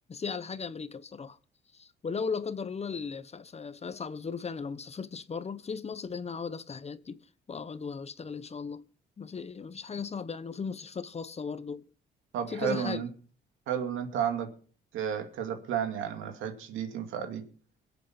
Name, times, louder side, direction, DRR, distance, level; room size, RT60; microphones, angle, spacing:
voice 1, 0.1-1.4 1.7-7.2 7.5-8.9 9.2-11.8 12.5-13.0, left 5 dB, 30° left, 0.9 m, -37 dB
voice 2, 12.3-13.1 13.7-14.5 14.9-17.4, right 8 dB, 90° right, 2.3 m, -32 dB
23.0 x 8.3 x 4.3 m
cardioid pair, 90°, 20 cm